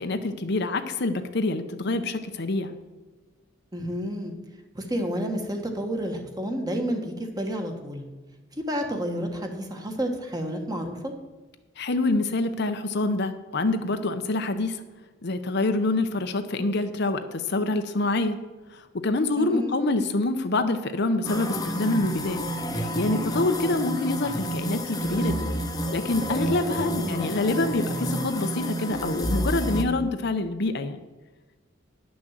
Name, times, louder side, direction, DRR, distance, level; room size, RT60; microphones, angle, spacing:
voice 1, 0.0-2.7 11.8-14.8 15.2-18.4 18.7-22.4 22.7-25.5 25.9-31.0, left 2 dB, 60° left, 8 dB, 0.8 m, -26 dB
voice 2, 3.7-4.3 4.7-8.0 8.6-11.1 19.3-19.8 26.8-27.4, equal, 20° right, 4 dB, 1.4 m, -30 dB
sound 1, 21.2-29.8, equal, 20° left, 1.0 m, -29 dB
10.5 x 6.3 x 7.4 m, 1.2 s
head